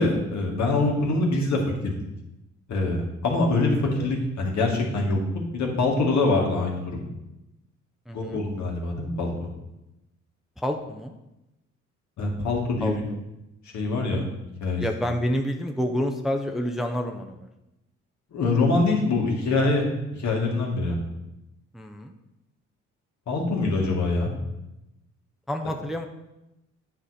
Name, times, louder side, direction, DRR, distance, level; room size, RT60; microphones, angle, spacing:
voice 1, 0.0-1.9 2.7-5.2 5.5-7.1 8.1-9.3 12.2-13.0 13.7-14.2 14.6-14.8 18.3-19.9 20.1-21.0 23.3-24.3, left 3 dB, 65° left, 0 dB, 1.9 m, -24 dB
voice 2, 8.1-8.4 10.6-11.1 12.8-13.2 14.8-17.5 21.7-22.1 25.5-26.0, equal, ahead, 3 dB, 0.6 m, -29 dB
9.0 x 4.9 x 4.2 m, 0.94 s
cardioid pair, 90°, 30 cm